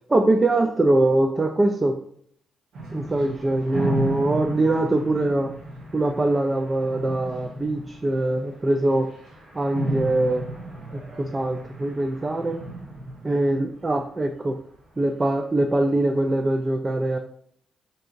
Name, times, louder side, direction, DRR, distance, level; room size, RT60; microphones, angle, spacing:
voice 1, 0.1-2.0 2.9-5.5 5.9-9.1 9.5-10.5 10.9-12.6 13.2-14.6 15.0-17.2, right 2 dB, 30° right, 4 dB, 0.3 m, -22 dB
sound 1, 2.7-14.8, right 1 dB, 80° right, 0.7 m, -35 dB
2.8 x 2.6 x 2.5 m, 0.63 s
supercardioid pair, 50°, 0 cm